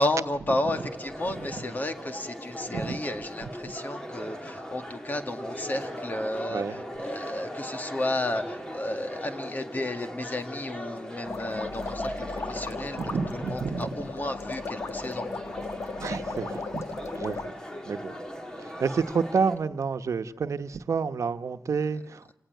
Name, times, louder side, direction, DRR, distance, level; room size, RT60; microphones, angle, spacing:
voice 1, 0.0-15.3, left 1 dB, 35° left, 2.0 m, -32 dB
sound 1, 0.7-19.6, equal, 15° left, 2.4 m, -39 dB
voice 2, 6.5-6.8 13.0-13.9 16.0-16.8 17.1-17.6 17.9-18.2 18.6-22.3, right 5 dB, 85° right, 1.0 m, -29 dB
sound 2, 11.3-17.5, left 3 dB, 70° left, 1.6 m, -36 dB
28.0 x 18.5 x 9.3 m
wide cardioid pair, 135°, 5 cm